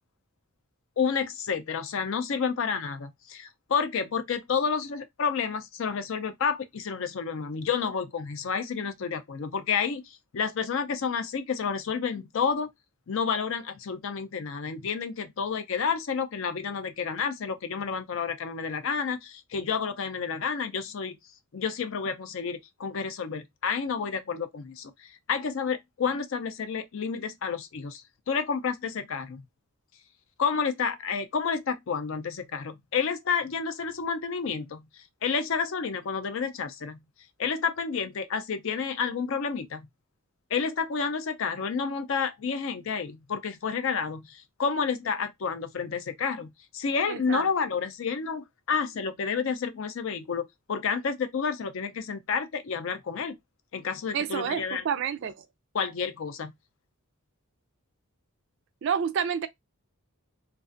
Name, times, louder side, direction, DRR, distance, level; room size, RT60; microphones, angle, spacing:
voice 1, 1.0-12.7 13.1-21.2 21.5-28.0 28.3-29.4 30.4-37.0 37.4-39.9 40.5-53.4 53.7-54.8 55.7-56.5, left 6 dB, 60° left, 0.4 m, -30 dB
voice 2, 47.1-47.5 54.1-55.4 58.8-59.5, right 7 dB, 55° right, 0.3 m, -29 dB
2.4 x 2.3 x 2.4 m
head